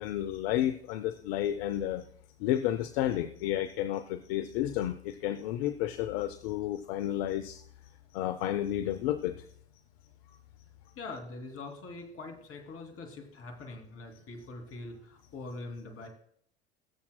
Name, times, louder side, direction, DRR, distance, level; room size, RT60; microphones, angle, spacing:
voice 1, 0.0-2.1 2.4-7.6 8.1-9.5, left 12 dB, 70° left, 10 dB, 0.7 m, -31 dB
voice 2, 11.0-16.1, left 3 dB, 45° left, 4 dB, 2.8 m, -43 dB
21.5 x 7.2 x 2.2 m, 0.65 s
hypercardioid pair, 75°, 32 cm